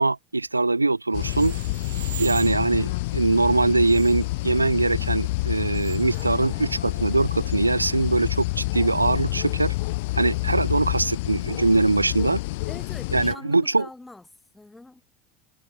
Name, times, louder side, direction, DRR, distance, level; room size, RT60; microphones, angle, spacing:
voice 1, 0.0-1.6 2.2-9.7 10.1-12.4 13.1-13.9, right 3 dB, 90° right, 0.3 m, -22 dB
sound 1, 1.1-13.3, left 22 dB, 60° left, 1.2 m, -28 dB
sound 2, 1.1-7.6, right 11 dB, 70° right, 2.0 m, -43 dB
voice 2, 12.7-14.3 14.5-15.0, left 2 dB, 10° left, 4.5 m, -43 dB
figure-of-eight pair, 75°, 0 cm